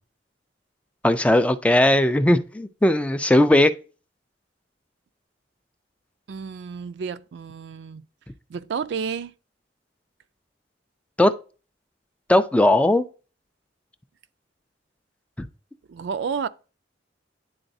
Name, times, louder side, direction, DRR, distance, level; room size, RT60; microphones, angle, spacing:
voice 1, 1.0-3.7 11.2-11.3 12.3-13.1 15.4-15.5, left 1 dB, 5° left, 0.3 m, -18 dB
voice 2, 6.3-8.0 8.5-9.3 15.9-16.5, right 6 dB, 65° right, 0.4 m, -31 dB
10.0 x 3.9 x 2.6 m
head